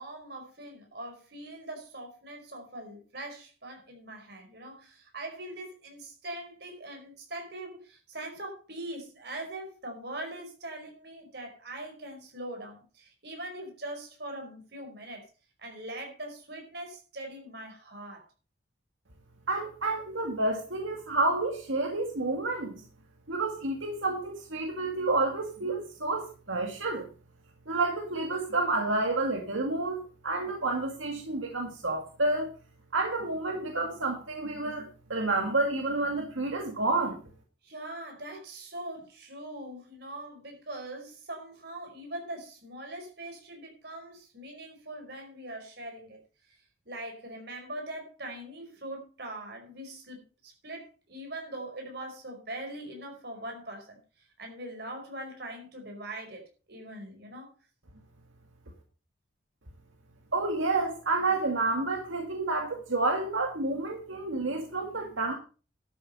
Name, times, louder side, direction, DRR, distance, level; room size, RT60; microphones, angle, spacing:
voice 1, 0.0-15.3 15.6-18.3 37.6-46.2 46.5-46.6 46.8-54.0 54.4-57.5, right 1 dB, 55° right, 5.0 m, -42 dB
voice 2, 19.5-22.8 23.3-27.0 27.7-32.5 32.9-37.2 60.3-65.3, right 2 dB, 85° right, 2.2 m, -29 dB
12.5 x 7.7 x 5.5 m
head